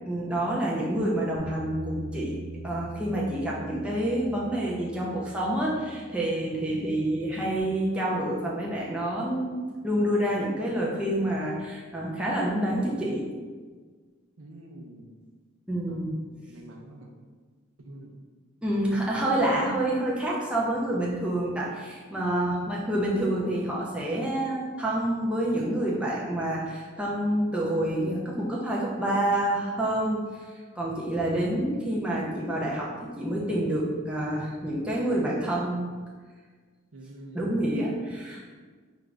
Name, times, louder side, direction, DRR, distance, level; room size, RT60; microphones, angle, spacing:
voice 1, 0.1-2.4 2.6-9.6 9.8-13.3 15.7-16.2 18.6-30.5 30.8-35.9 37.3-38.5, right 1 dB, 5° right, -5 dB, 0.5 m, -28 dB
Bass guitar, 1.4-7.6, right 1 dB, 20° left, 1.0 m, -42 dB
voice 2, 14.4-15.2 15.9-16.2 16.5-17.1 17.8-18.1 36.9-37.5, right 1 dB, 70° right, 0 dB, 0.5 m, -46 dB
4.9 x 2.5 x 3.3 m, 1.5 s
head